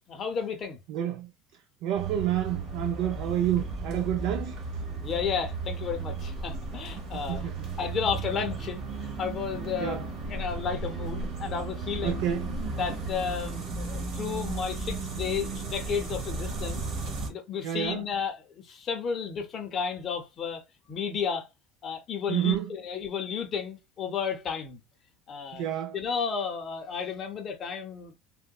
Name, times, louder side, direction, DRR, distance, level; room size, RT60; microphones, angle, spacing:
voice 1, 0.1-0.8 5.0-7.5 7.8-8.8 9.2-12.3 12.8-16.8 17.3-21.5 21.8-24.8 25.3-25.7 25.9-28.2, left 6 dB, 30° left, 0.6 m, -32 dB
voice 2, 0.9-1.3 1.8-4.6 7.1-7.7 9.8-10.0 12.0-12.6 17.6-18.0 22.3-22.7 25.5-26.0, right 11 dB, 65° right, 0.4 m, -29 dB
sound 1, 1.9-17.3, right 3 dB, 45° right, 1.1 m, -35 dB
3.7 x 2.1 x 2.2 m
cardioid pair, 155°, 0 cm